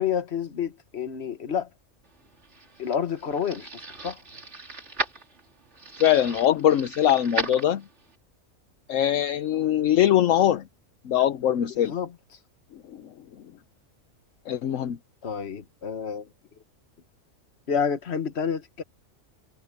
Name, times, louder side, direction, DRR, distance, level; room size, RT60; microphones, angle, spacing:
voice 1, 0.0-1.7 2.8-4.2 11.9-12.1 15.2-16.3 17.7-18.8, left 7 dB, 50° left, 1.5 m, -29 dB
sound 1, 2.2-8.2, right 3 dB, 55° right, 3.0 m, -36 dB
voice 2, 6.0-7.8 8.9-10.6 11.0-11.9 12.7-13.1 14.5-15.0, left 11 dB, 70° left, 1.1 m, -22 dB
omnidirectional pair, 1.4 m